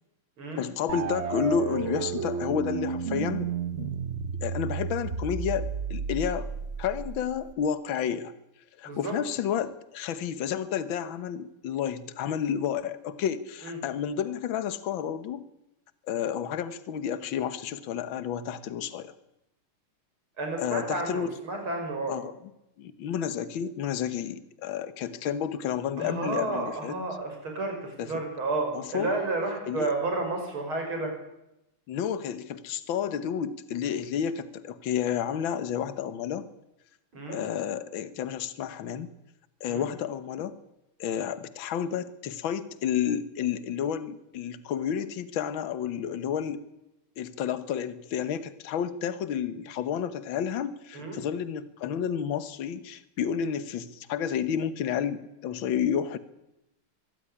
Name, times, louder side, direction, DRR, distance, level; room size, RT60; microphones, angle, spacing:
voice 1, 0.6-3.5 3.8-4.0 4.4-6.5 6.8-8.3 8.8-15.4 16.1-19.1 20.6-21.3 22.1-22.3 22.8-27.0 28.0-28.1 28.7-29.1 29.7-29.9 31.9-36.5 37.3-39.1 39.6-40.6 41.0-46.6 47.2-56.2, left 8 dB, 65° left, 13 dB, 1.9 m, -31 dB
sound 1, 0.9-7.5, right 6 dB, 45° right, 0.9 m, -32 dB
voice 2, 20.4-22.1 26.0-31.1 37.1-37.4 39.7-39.8 50.9-51.2, right 2 dB, 70° right, 3 dB, 6.6 m, -31 dB
23.5 x 14.5 x 10.0 m, 0.89 s
omnidirectional pair, 2.4 m